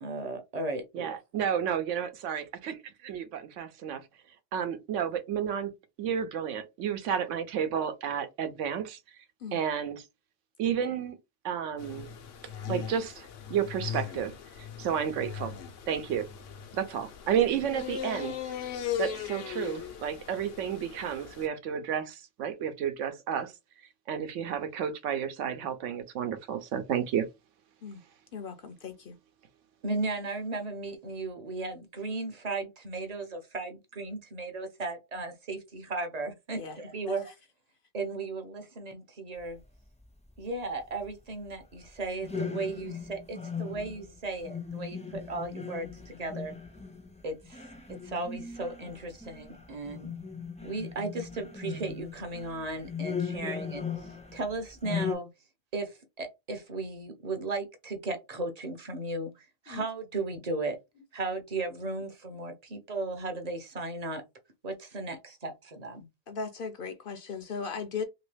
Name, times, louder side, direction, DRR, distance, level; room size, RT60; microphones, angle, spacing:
voice 1, 0.0-1.1 29.8-37.3 37.9-39.6 40.4-46.6 47.2-47.6 47.9-50.1 50.6-55.3 55.7-60.8 61.1-64.2 64.6-66.1, right 3 dB, 40° right, 0.6 m, -36 dB
voice 2, 0.9-4.0 4.5-5.7 6.0-9.0 9.5-10.0 10.6-11.2 11.4-12.1 12.7-15.5 15.9-16.3 16.7-18.4 19.0-23.5 24.1-27.3, right 8 dB, 85° right, 1.0 m, -31 dB
sound 1, 11.8-21.5, left 8 dB, 85° left, 1.0 m, -39 dB
voice 3, 28.3-29.2 36.5-36.8 37.1-37.2 59.7-59.8 62.7-62.8 66.3-68.0, left 5 dB, 60° left, 0.6 m, -37 dB
sound 2, 42.2-54.5 54.8-55.1, left 6 dB, 10° left, 0.5 m, -38 dB
3.0 x 2.9 x 3.2 m
omnidirectional pair, 1.2 m